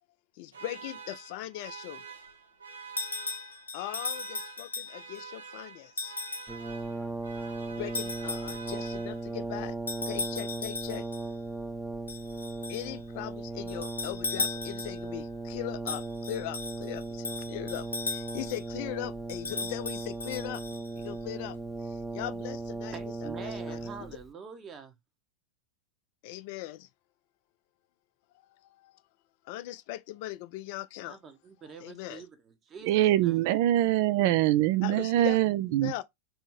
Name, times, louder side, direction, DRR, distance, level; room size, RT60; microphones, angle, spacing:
voice 1, 0.4-2.0 3.7-6.2 7.7-9.8 10.0-11.0 12.7-20.6 21.0-23.8 26.2-26.9 28.6-29.0 29.4-31.2 31.8-32.2 34.8-35.4 35.8-36.0, left 15 dB, 45° left, 0.3 m, -39 dB
sound 1, 0.5-9.5, right 5 dB, 70° right, 0.9 m, -47 dB
sound 2, 3.0-5.2 6.0-6.6 7.9-9.0 9.9-11.3 12.1-12.9 13.7-15.1 15.9-18.6 19.3-21.1, left 3 dB, 75° left, 0.7 m, -37 dB
Brass instrument, 6.5-24.3, right 2 dB, ahead, 0.6 m, -37 dB
voice 2, 22.9-24.9 31.0-33.4, right 5 dB, 25° right, 1.0 m, -46 dB
voice 3, 32.9-35.9, right 14 dB, 50° right, 0.4 m, -24 dB
3.5 x 2.8 x 4.3 m
figure-of-eight pair, 90°, 0 cm